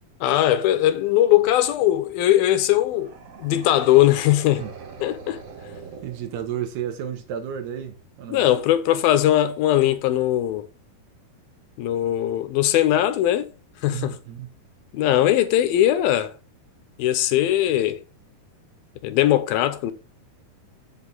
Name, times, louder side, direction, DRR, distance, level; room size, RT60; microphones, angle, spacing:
voice 1, 0.2-3.1 3.4-4.6 5.0-5.4 8.3-10.7 11.8-13.5 13.8-14.2 14.9-16.3 17.0-18.0 19.0-19.9, left 13 dB, 75° left, 2.5 m, -20 dB
sound 1, 2.9-6.8, right 5 dB, 65° right, 3.8 m, -42 dB
voice 2, 6.0-8.5 13.9-14.5, right 9 dB, 85° right, 3.5 m, -32 dB
8.0 x 7.9 x 3.9 m
omnidirectional pair, 4.5 m